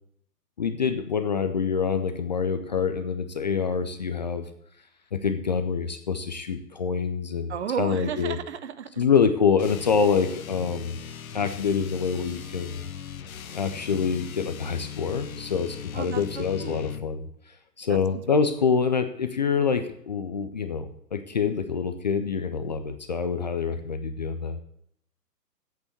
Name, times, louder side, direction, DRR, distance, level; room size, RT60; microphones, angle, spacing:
voice 1, 0.6-4.4 5.1-7.5 7.8-8.4 9.0-11.0 11.3-12.8 13.5-17.2 17.8-24.6, left 6 dB, 30° left, 8 dB, 0.5 m, -26 dB
voice 2, 7.5-9.0 15.9-16.9 17.9-18.4, right 8 dB, 45° right, 13 dB, 0.7 m, -34 dB
sound 1, 9.6-17.1, left 8 dB, 60° left, 0.9 m, -39 dB
8.3 x 6.9 x 8.2 m, 0.71 s
figure-of-eight pair, 125°, 49 cm